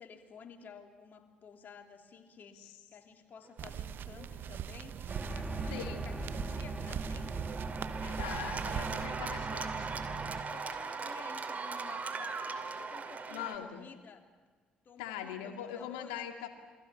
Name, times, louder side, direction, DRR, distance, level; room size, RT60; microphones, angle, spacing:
voice 1, 0.0-7.5 7.9-9.2 10.5-14.3 14.8-16.2, left 6 dB, 50° left, 4 dB, 3.2 m, -53 dB
sound 1, 3.6-9.1, right 9 dB, 60° right, 1.0 m, -42 dB
Cheering / Applause, 3.9-13.6, right 4 dB, 40° right, 2.7 m, -41 dB
sound 2, 5.1-10.4, right 3 dB, 25° right, 3.0 m, -40 dB
voice 2, 5.7-6.1 8.2-9.9 13.3-13.9 15.0-16.5, left 9 dB, 80° left, 6 dB, 2.3 m, -41 dB
28.0 x 24.0 x 7.0 m, 1.4 s
hypercardioid pair, 50°, 4 cm